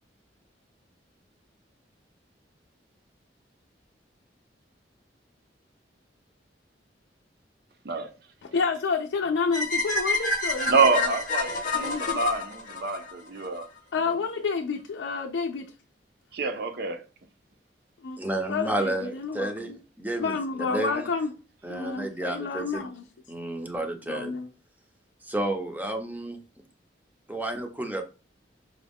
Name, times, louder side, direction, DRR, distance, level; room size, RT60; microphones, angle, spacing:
voice 1, 8.4-11.0 11.7-12.2 13.9-15.7 18.0-19.8 20.2-21.3 21.7-23.0 24.1-24.5, left 4 dB, 90° left, 0.4 m, -30 dB
sound 1, 9.5-13.6, left 2 dB, 45° left, 0.8 m, -28 dB
voice 2, 10.7-13.7 16.3-17.0, right 4 dB, 60° right, 0.6 m, -26 dB
voice 3, 18.2-21.1 21.6-22.9 23.3-24.3 25.2-26.4 27.3-28.0, right 1 dB, 10° right, 0.5 m, -31 dB
4.8 x 2.2 x 3.4 m
head